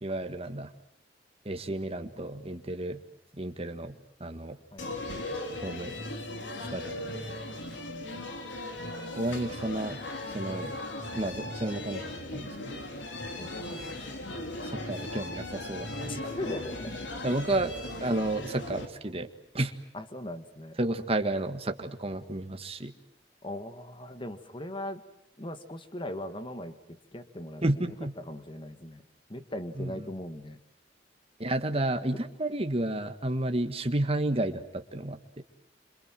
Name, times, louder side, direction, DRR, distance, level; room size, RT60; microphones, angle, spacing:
voice 1, 0.0-0.7 1.5-3.0 3.4-3.9 4.2-4.6 5.6-5.9 6.7-7.3 9.2-10.0 10.3-10.7 11.1-12.8 14.6-16.5 17.2-17.7 18.0-19.3 19.5-19.7 20.8-22.9 27.6-28.1 29.8-29.9 31.4-35.4, right 1 dB, 35° right, 7 dB, 1.8 m, -31 dB
voice 2, 4.7-5.1 13.3-14.0 16.1-17.1 19.9-20.8 23.4-25.0 25.4-29.0 29.3-30.6, left 1 dB, 30° left, 9 dB, 1.9 m, -40 dB
sound 1, 4.8-18.9, left 1 dB, 85° left, 3.4 m, -38 dB
27.0 x 27.0 x 7.7 m, 0.78 s
head